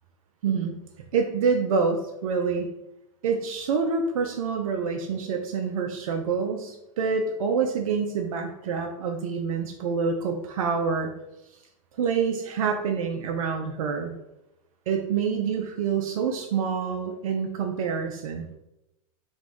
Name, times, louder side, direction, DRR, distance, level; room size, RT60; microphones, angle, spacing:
voice 1, 0.4-0.7 1.1-2.7 3.2-11.1 12.0-14.2 14.9-18.5, right 5 dB, 70° right, 3 dB, 0.5 m, -27 dB
2.9 x 2.6 x 3.5 m, 0.89 s
hypercardioid pair, 95°, 18 cm